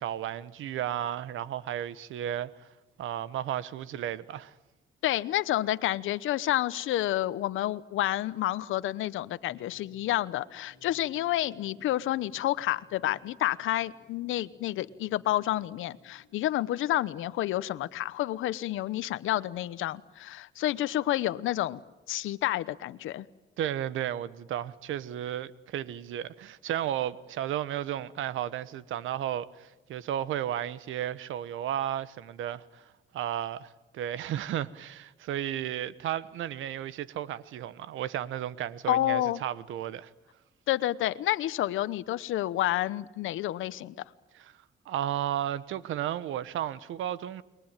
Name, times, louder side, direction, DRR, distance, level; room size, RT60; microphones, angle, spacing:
voice 1, 0.0-2.7 3.0-4.5 23.6-40.1 44.3-44.5 44.8-47.4, right 11 dB, 80° right, 1.2 m, -33 dB
voice 2, 5.0-21.8 22.1-23.2 38.9-39.4 40.7-43.9, left 14 dB, 85° left, 1.0 m, -29 dB
sound 1, 9.4-16.3, left 2 dB, ahead, 8.0 m, -62 dB
29.5 x 22.0 x 9.0 m
cardioid pair, 90°, 20 cm